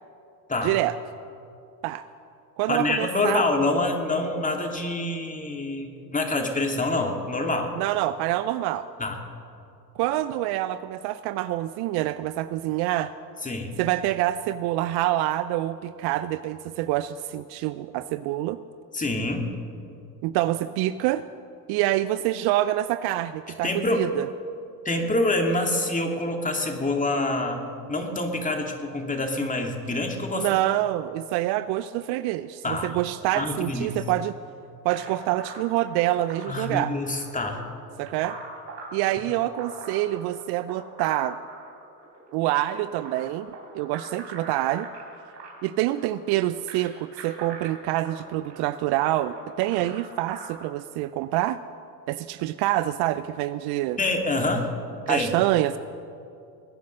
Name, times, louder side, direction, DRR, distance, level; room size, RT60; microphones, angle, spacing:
voice 1, 0.6-1.0 1.8-2.0 2.6-3.5 7.8-8.9 10.0-13.1 13.8-18.6 20.2-21.2 21.7-24.3 30.3-34.4 34.8-36.9 38.0-38.4 38.9-41.4 42.3-43.5 43.7-44.9 45.6-51.6 52.1-54.0 55.1-55.8, right 14 dB, 50° right, 14 dB, 0.6 m, -26 dB
voice 2, 2.7-7.7 9.0-9.2 13.4-13.7 18.9-19.5 23.6-24.0 24.8-27.6 27.9-30.5 32.6-33.0 33.3-34.0 36.5-37.6 54.0-54.7 55.1-55.3, left 2 dB, 15° left, 3 dB, 2.5 m, -26 dB
sound 1, 34.9-50.5, right 4 dB, 90° right, 3.6 m, -43 dB
22.0 x 9.4 x 6.4 m, 2.6 s
hypercardioid pair, 75°, 50 cm